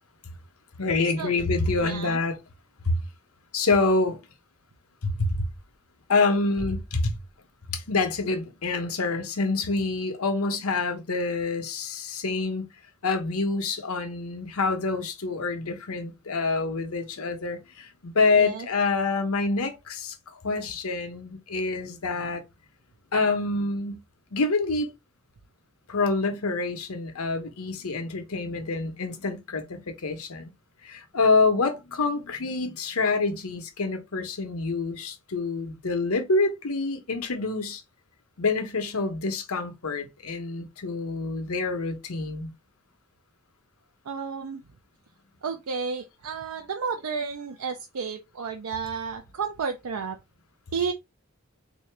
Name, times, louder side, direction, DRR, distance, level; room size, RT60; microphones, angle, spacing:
voice 1, 0.8-2.4 2.8-3.0 3.5-4.2 5.0-5.5 6.1-7.1 7.7-12.6 13.0-22.4 23.1-24.0 24.3-24.9 25.9-30.5 30.8-37.8 38.4-42.5, left 3 dB, 80° left, 0.9 m, -27 dB
voice 2, 1.8-2.2 18.4-18.7 44.1-44.6 45.4-50.2 50.7-50.9, right 5 dB, 85° right, 0.5 m, -32 dB
3.7 x 2.7 x 3.2 m
head